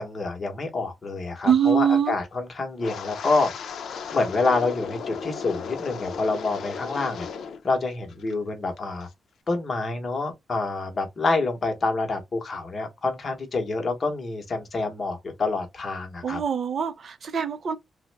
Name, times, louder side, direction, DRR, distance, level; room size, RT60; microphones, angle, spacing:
voice 1, 0.0-3.5 3.9-7.3 7.6-9.1 9.5-16.4, left 3 dB, 30° left, 0.9 m, -27 dB
voice 2, 1.4-2.1 16.2-17.8, right 8 dB, 45° right, 0.4 m, -23 dB
Wind, 2.8-7.6 7.9-8.3 8.8-9.1, left 6 dB, 75° left, 0.5 m, -35 dB
3.4 x 2.0 x 3.3 m
wide cardioid pair, 175°, 0 cm